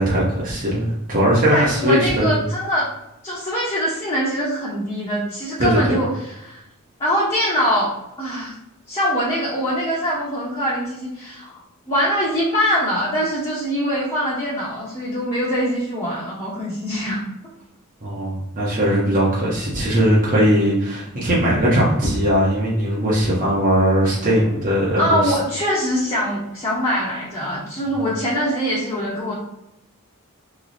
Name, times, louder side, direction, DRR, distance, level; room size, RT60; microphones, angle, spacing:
voice 1, 0.0-2.4 5.6-6.0 18.0-25.4, equal, 40° right, -6 dB, 0.8 m, -19 dB
voice 2, 1.5-2.9 3.2-6.1 6.4-6.6 7.0-7.9 8.2-8.5 8.9-11.5 11.9-17.2 25.0-29.4, equal, 25° left, -7 dB, 0.8 m, -23 dB
3.1 x 2.0 x 3.9 m, 0.86 s
head